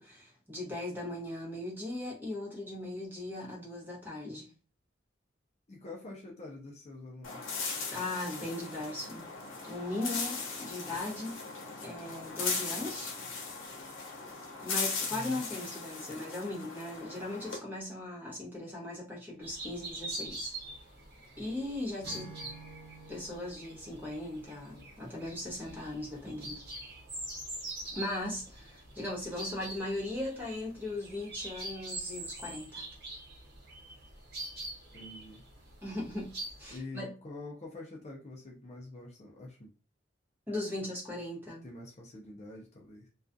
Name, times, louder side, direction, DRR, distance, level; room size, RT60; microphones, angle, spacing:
voice 1, 0.0-4.5 7.9-9.3 9.6-11.4 11.8-13.1 14.6-20.5 21.4-22.3 23.1-26.6 27.9-32.8 35.8-37.1 40.5-41.7, left 1 dB, 10° right, -3 dB, 0.9 m, -38 dB
voice 2, 5.7-7.5 15.1-15.4 22.1-22.3 34.9-35.4 36.7-39.7 41.6-43.1, left 2 dB, 35° left, -1 dB, 0.4 m, -46 dB
sound 1, 7.2-17.6, left 4 dB, 75° left, 0.7 m, -38 dB
sound 2, 19.4-36.8, right 2 dB, 50° right, 0.9 m, -44 dB
Acoustic guitar / Strum, 22.0-25.5, right 4 dB, 85° right, 0.7 m, -52 dB
2.3 x 2.3 x 2.5 m, 0.36 s
head